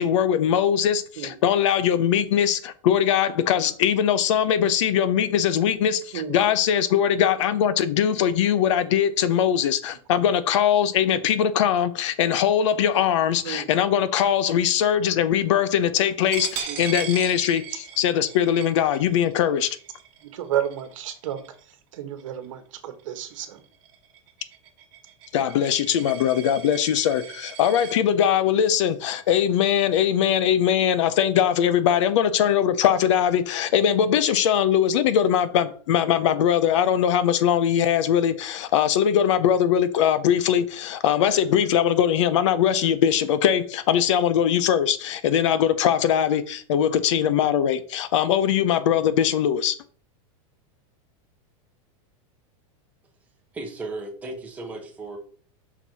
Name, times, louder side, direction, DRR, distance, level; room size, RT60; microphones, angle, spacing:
voice 1, 0.0-19.8 25.3-49.8, left 9 dB, 60° left, 0.6 m, -21 dB
Coin (dropping), 16.3-21.7 22.2-22.5 22.8-28.0, right 9 dB, 40° right, 1.2 m, -38 dB
voice 2, 20.3-21.4 21.9-23.6, right 10 dB, 65° right, 1.2 m, -31 dB
voice 3, 53.5-55.2, right 2 dB, 10° right, 1.1 m, -35 dB
5.9 x 4.1 x 4.5 m
supercardioid pair, 180°, 18 cm